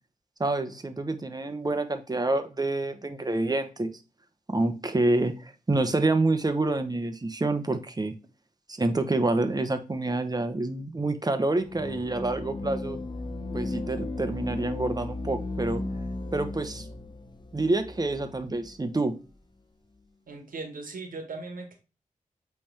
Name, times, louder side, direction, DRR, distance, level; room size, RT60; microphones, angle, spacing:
voice 1, 0.4-3.9 4.5-8.1 8.7-13.0 13.5-15.8 16.3-16.9 17.5-19.2, right 2 dB, 30° right, 9 dB, 1.0 m, -27 dB
sound 1, 11.6-18.8, left 2 dB, 35° left, 0.8 m, -35 dB
voice 2, 20.3-21.8, right 3 dB, 85° right, 5 dB, 1.6 m, -38 dB
8.6 x 3.5 x 3.4 m, 0.32 s
wide cardioid pair, 70°, 14 cm